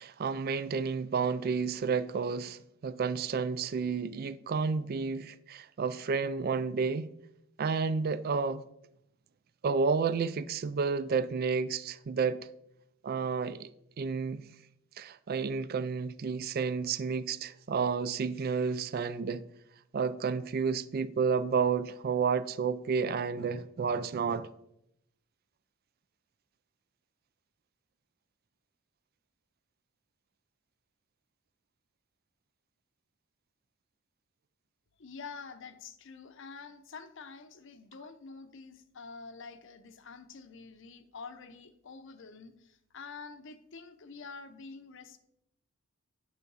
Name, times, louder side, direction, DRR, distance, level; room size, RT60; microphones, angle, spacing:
voice 1, 0.0-7.1 7.6-8.6 9.6-12.5 13.0-13.7 14.0-14.4 15.0-19.4 19.9-24.5, right 5 dB, 45° right, 0.3 m, -31 dB
voice 2, 35.0-45.2, left 4 dB, 60° left, 0.7 m, -47 dB
9.5 x 5.7 x 4.0 m
head